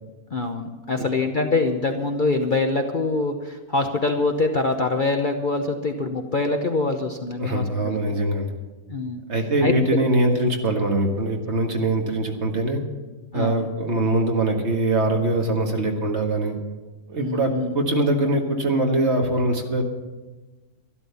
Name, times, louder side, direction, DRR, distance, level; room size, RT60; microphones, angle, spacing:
voice 1, 0.3-8.0 8.9-9.2 9.6-9.7 13.3-13.7 17.2-17.8, left 3 dB, 40° left, 4 dB, 0.9 m, -24 dB
voice 2, 7.4-8.5 9.3-12.8 13.3-16.6 17.1-19.8, right 2 dB, 45° right, 2 dB, 1.9 m, -22 dB
12.5 x 12.5 x 6.9 m, 1.2 s
omnidirectional pair, 1.6 m